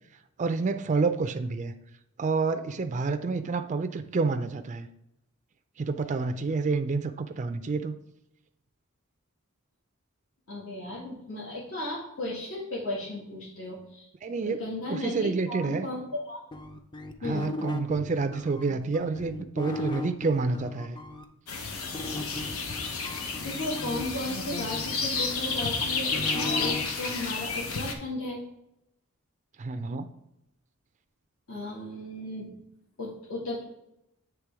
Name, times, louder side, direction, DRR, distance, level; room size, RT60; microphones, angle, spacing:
voice 1, 0.4-1.7 2.2-4.9 5.8-7.9 14.2-14.6 14.9-15.9 17.2-21.0 29.6-30.1, right 4 dB, 35° right, 8 dB, 0.4 m, -28 dB
voice 2, 10.5-14.1 14.4-16.4 17.2-17.5 23.4-28.4 31.5-32.6 33.0-33.6, left 1 dB, 75° left, -7 dB, 1.9 m, -35 dB
sound 1, 16.5-21.2 21.9-26.8, left 2 dB, 20° left, 0.5 m, -37 dB
sound 2, 21.5-27.9, left 4 dB, 90° left, 0.9 m, -31 dB
8.2 x 3.4 x 4.7 m, 0.84 s
head